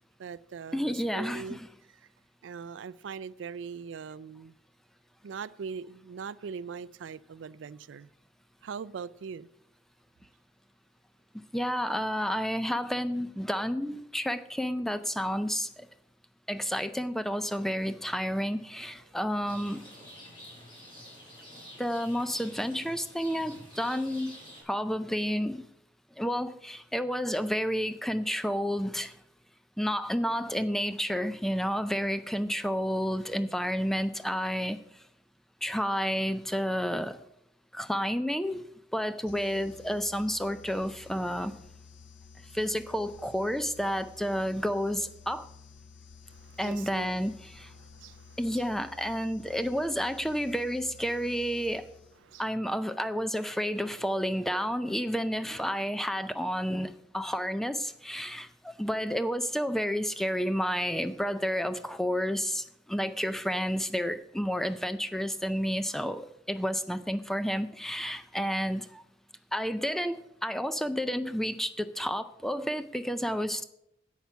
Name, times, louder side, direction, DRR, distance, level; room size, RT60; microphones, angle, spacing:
voice 1, 0.2-1.6 2.4-4.6 5.2-8.1 8.6-9.5 19.1-19.2 46.3-47.2 47.8-48.6 52.3-52.4, right 6 dB, 90° right, 0.4 m, -41 dB
voice 2, 0.7-1.7 11.5-15.9 16.5-19.8 21.8-24.4 24.7-25.7 26.2-29.1 29.8-34.8 35.6-37.2 37.7-38.6 38.9-41.6 42.5-45.5 46.6-47.7 48.4-51.9 52.4-69.0 69.5-73.6, equal, ahead, 0.4 m, -30 dB
Rain, 19.4-24.6, equal, 25° left, 5.1 m, -49 dB
sound 1, 39.3-52.4, left 5 dB, 80° left, 0.9 m, -52 dB
10.5 x 8.3 x 5.7 m
head